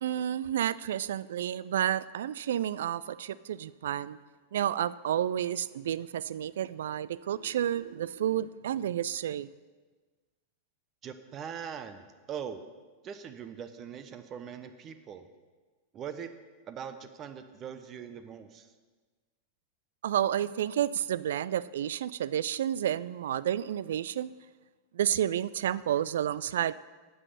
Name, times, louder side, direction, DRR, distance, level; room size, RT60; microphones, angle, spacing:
voice 1, 0.0-4.2 4.5-9.5 20.0-24.3 24.9-26.7, right 10 dB, 60° right, 19 dB, 0.3 m, -30 dB
voice 2, 11.0-12.6 13.0-15.3 15.9-16.3 16.7-18.7, right 8 dB, 30° right, 10 dB, 0.8 m, -41 dB
9.6 x 7.9 x 6.6 m, 1.4 s
figure-of-eight pair, 90°, 0 cm